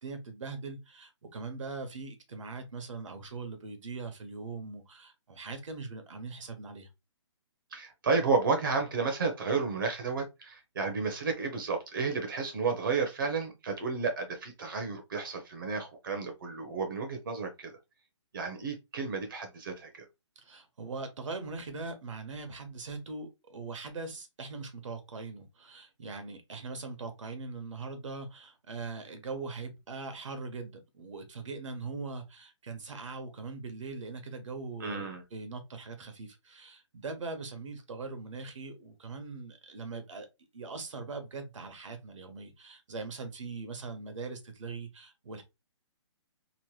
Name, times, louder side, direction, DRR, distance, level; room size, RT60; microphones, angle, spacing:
voice 1, 0.0-6.9 20.4-40.3 40.5-45.4, right 4 dB, 80° right, 1.0 m, -41 dB
voice 2, 7.7-17.7 18.3-20.1 34.8-35.2, right 4 dB, 45° right, 0.7 m, -32 dB
3.0 x 2.1 x 3.1 m
hypercardioid pair, 170°, 16 cm